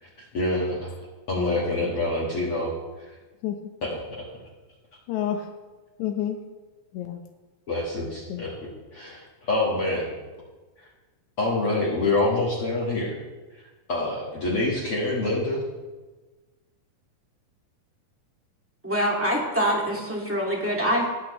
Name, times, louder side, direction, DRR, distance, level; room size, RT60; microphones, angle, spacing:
voice 1, 0.0-0.9 1.3-2.7 3.0-3.1 3.8-4.2 7.7-8.5 8.9-10.1 11.4-13.2 13.9-15.6, left 2 dB, 50° left, -6 dB, 2.2 m, -26 dB
voice 2, 1.4-1.9 3.4-3.7 5.1-5.5 6.0-6.4 6.9-7.2 8.3-8.4, left 10 dB, 80° left, 4 dB, 1.7 m, -30 dB
voice 3, 18.8-21.1, equal, 10° right, -3 dB, 0.9 m, -24 dB
20.0 x 8.6 x 3.2 m, 1.2 s
omnidirectional pair, 4.1 m